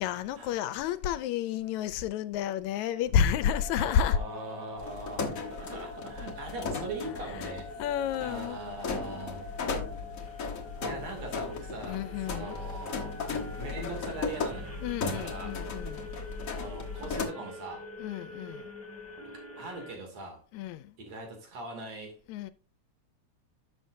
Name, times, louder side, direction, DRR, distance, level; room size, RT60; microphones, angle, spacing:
voice 1, 0.0-4.2 7.3-7.5 7.8-8.6 11.9-12.6 14.8-16.1 18.0-18.7 20.5-21.0 22.3-22.5, left 9 dB, 80° left, 2.0 m, -30 dB
sound 1, 3.4-20.0, left 2 dB, 5° left, 1.7 m, -45 dB
voice 2, 3.7-7.7 8.2-9.5 10.8-13.2 13.6-14.8 15.0-15.6 16.6-17.9 19.6-20.4 21.1-22.2, right 2 dB, 60° right, 3.8 m, -41 dB
sound 2, 4.8-17.2, left 4 dB, 50° left, 1.0 m, -36 dB
11.0 x 7.1 x 2.7 m
omnidirectional pair, 3.3 m